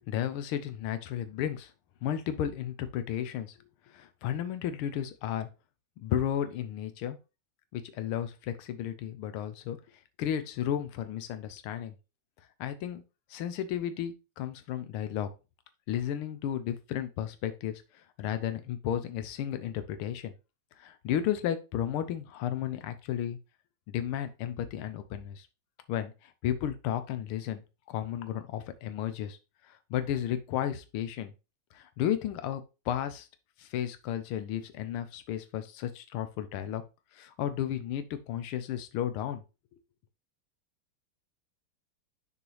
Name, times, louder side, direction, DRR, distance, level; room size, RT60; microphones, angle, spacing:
voice 1, 0.1-1.7 2.0-3.6 3.9-5.5 6.0-7.2 7.7-9.8 10.2-11.9 12.6-13.0 13.3-15.3 15.9-17.8 18.2-20.3 20.8-23.4 23.9-25.5 25.9-29.4 29.6-31.3 31.7-33.3 33.6-36.8 37.1-39.4, left 10 dB, 80° left, 11 dB, 1.7 m, -33 dB
6.9 x 4.4 x 3.2 m, 0.28 s
omnidirectional pair, 2.4 m